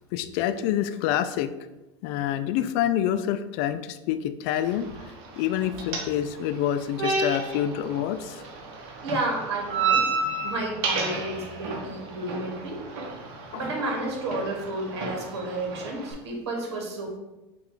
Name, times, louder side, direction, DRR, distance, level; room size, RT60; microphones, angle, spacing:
voice 1, 0.1-1.5 2.0-4.9 5.4-8.4 13.5-13.6, left 11 dB, 60° left, 11 dB, 0.4 m, -27 dB
sound 1, 4.6-16.1, right 4 dB, 60° right, 1.0 m, -32 dB
voice 2, 8.8-10.0 10.4-12.8 13.5-17.2, right 2 dB, 85° right, 0 dB, 1.1 m, -31 dB
5.4 x 2.5 x 3.7 m, 1.0 s
hypercardioid pair, 105°, 14 cm